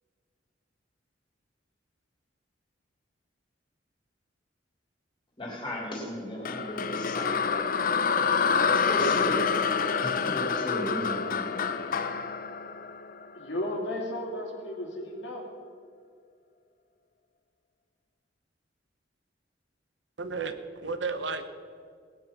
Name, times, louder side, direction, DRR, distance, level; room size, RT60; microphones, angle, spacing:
voice 1, 5.4-11.8, equal, 25° left, -2 dB, 3.4 m, -36 dB
sound 1, 6.5-13.6, left 5 dB, 45° left, 0.5 m, -27 dB
voice 2, 13.3-15.5, left 1 dB, 65° left, -1 dB, 2.8 m, -34 dB
voice 3, 20.2-21.4, right 4 dB, 70° right, 9 dB, 1.0 m, -33 dB
18.0 x 9.5 x 5.9 m, 2.1 s
head